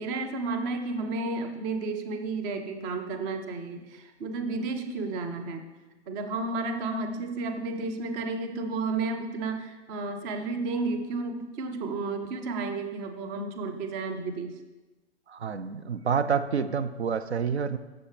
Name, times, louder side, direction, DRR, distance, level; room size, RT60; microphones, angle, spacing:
voice 1, 0.0-5.6 6.1-14.6, right 3 dB, 15° right, 6 dB, 0.5 m, -32 dB
voice 2, 15.3-17.8, right 6 dB, 70° right, 11 dB, 0.6 m, -28 dB
14.5 x 6.7 x 3.3 m, 1.2 s
figure-of-eight pair, 115°, 35 cm